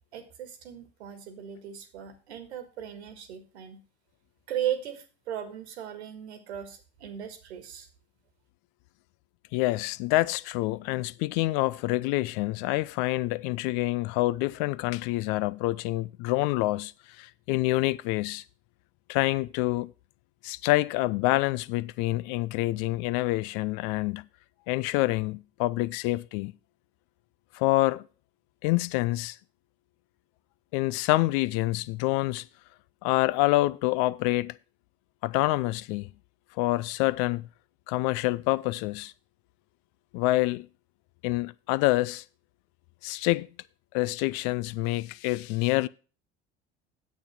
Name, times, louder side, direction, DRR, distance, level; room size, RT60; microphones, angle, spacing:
voice 1, 0.1-3.8 4.5-7.9, right 10 dB, 80° right, 1.8 m, -37 dB
voice 2, 9.5-16.9 17.2-18.4 19.1-19.9 20.4-24.2 24.7-26.5 27.5-28.0 28.6-29.4 30.7-32.4 33.0-34.6 35.2-36.1 36.6-37.4 37.9-39.1 40.1-40.7 41.2-42.2 43.0-43.5 43.9-45.9, left 19 dB, 60° left, 0.5 m, -27 dB
9.1 x 7.3 x 5.7 m
hypercardioid pair, 70°, 33 cm